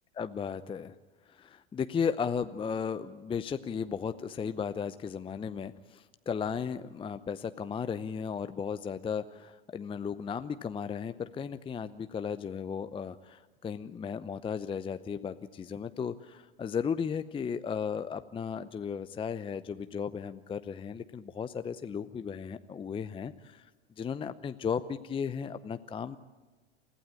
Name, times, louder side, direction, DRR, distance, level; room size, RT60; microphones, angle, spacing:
voice 1, 0.1-1.0 1.3-23.7 24.0-26.2, left 6 dB, 15° left, 11 dB, 0.7 m, -35 dB
29.0 x 15.5 x 9.0 m, 1.2 s
figure-of-eight pair, 80°, 30 cm